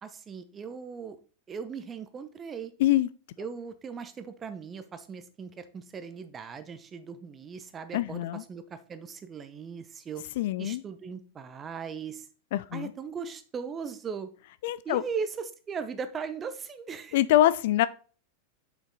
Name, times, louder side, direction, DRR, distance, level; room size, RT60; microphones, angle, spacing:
voice 1, 0.0-1.2 1.5-2.7 3.4-10.3 10.6-12.3 12.7-14.3 14.8-17.2, right 6 dB, 20° right, 0.8 m, -38 dB
voice 2, 7.9-8.4 10.4-10.8 12.5-12.9 14.6-15.0 17.1-17.9, left 14 dB, 55° left, 0.3 m, -24 dB
6.4 x 4.9 x 4.1 m
figure-of-eight pair, 90°, 0 cm